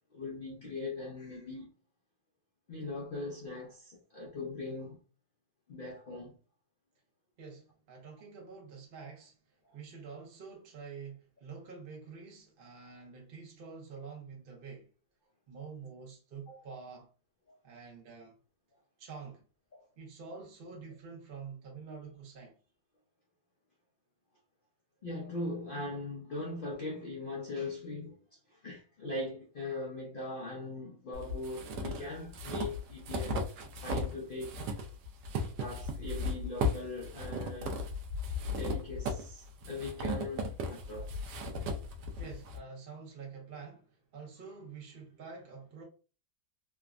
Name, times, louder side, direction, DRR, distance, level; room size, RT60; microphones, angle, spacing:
voice 1, 0.1-1.7 2.7-5.0 5.7-6.4 9.6-9.7 16.5-16.6 17.5-17.6 19.7-19.8 25.0-28.2 28.5-34.6 35.6-37.8 38.5-41.2, left 2 dB, 70° left, 0.5 m, -40 dB
voice 2, 7.4-9.4 9.7-14.9 15.5-17.1 17.6-18.3 19.0-19.4 20.0-22.5 42.2-45.8, right 5 dB, 55° right, 0.6 m, -47 dB
sound 1, 31.1-34.1 34.4-42.6, left 1 dB, 80° right, 1.1 m, -36 dB
3.3 x 2.0 x 2.3 m
omnidirectional pair, 1.7 m